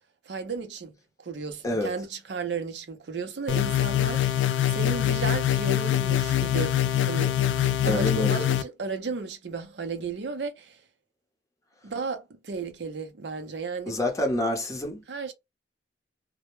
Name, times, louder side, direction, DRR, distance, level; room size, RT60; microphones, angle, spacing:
voice 1, 0.3-0.9 1.2-7.4 7.8-10.8 11.8-14.0 15.1-15.3, right 4 dB, 70° right, 0.6 m, -34 dB
sound 1, 3.5-8.6, left 11 dB, 90° left, 0.3 m, -24 dB
voice 2, 7.9-8.5 13.9-15.0, left 1 dB, 20° left, 0.7 m, -27 dB
2.1 x 2.1 x 3.0 m
head